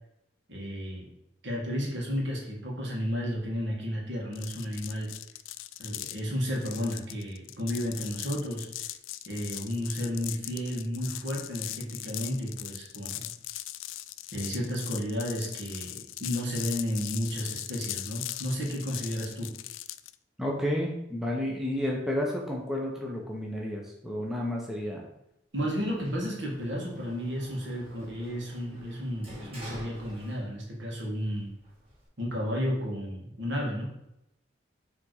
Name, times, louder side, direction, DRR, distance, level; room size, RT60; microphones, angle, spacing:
voice 1, 0.5-1.1 1.4-5.1 5.8-8.7 9.3-13.3 14.3-19.5 25.5-31.5 32.2-34.0, equal, 70° right, -2 dB, 1.9 m, -32 dB
sound 1, 4.3-20.1, left 15 dB, 85° left, 0.3 m, -40 dB
voice 2, 20.4-25.1, left 1 dB, ahead, -2 dB, 0.8 m, -31 dB
Sliding door, 26.0-30.8 31.1-32.1, equal, 30° right, 2.2 m, -48 dB
6.6 x 3.6 x 4.8 m, 0.85 s
head